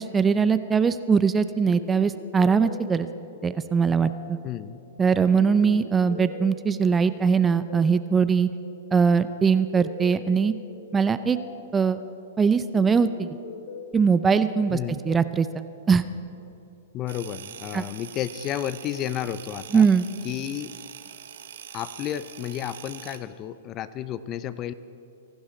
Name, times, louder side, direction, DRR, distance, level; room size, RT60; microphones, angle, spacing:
voice 1, 0.0-3.1 3.4-4.4 5.0-8.5 8.9-10.5 10.9-11.4 11.7-12.0 12.4-13.4 13.9-14.8 15.0-16.0 17.7-17.8 19.7-20.1, right 6 dB, 15° right, 13 dB, 0.5 m, -21 dB
sound 1, 1.7-16.5, left 5 dB, 65° left, 1.8 m, -44 dB
voice 2, 4.4-4.8 14.7-15.0 16.9-19.9 20.2-20.7 21.7-24.7, left 11 dB, 35° left, 15 dB, 0.6 m, -32 dB
sound 2, 17.1-23.2, right 9 dB, 70° right, 1.1 m, -43 dB
24.5 x 12.0 x 4.3 m, 2.7 s
hypercardioid pair, 120°, 0 cm